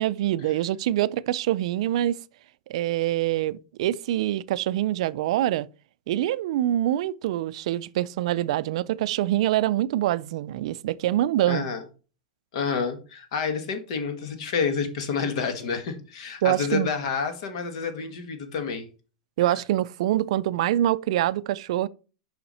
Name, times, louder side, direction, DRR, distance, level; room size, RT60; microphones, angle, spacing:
voice 1, 0.0-2.2 2.7-5.7 6.1-11.6 16.4-16.9 19.4-21.9, right 13 dB, 55° right, 0.4 m, -25 dB
voice 2, 11.5-11.8 12.5-18.9, left 5 dB, 55° left, 1.6 m, -29 dB
6.9 x 5.7 x 4.2 m
supercardioid pair, 170°, 4 cm